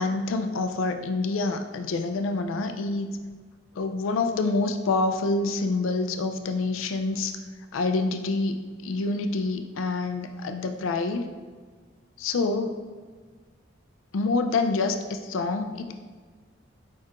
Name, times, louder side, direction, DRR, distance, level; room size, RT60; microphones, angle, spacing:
voice 1, 0.0-3.1 3.8-7.3 7.7-8.6 8.8-11.2 12.2-12.8 14.1-16.0, left 3 dB, 90° left, 7 dB, 0.4 m, -27 dB
4.8 x 4.5 x 2.4 m, 1.5 s
head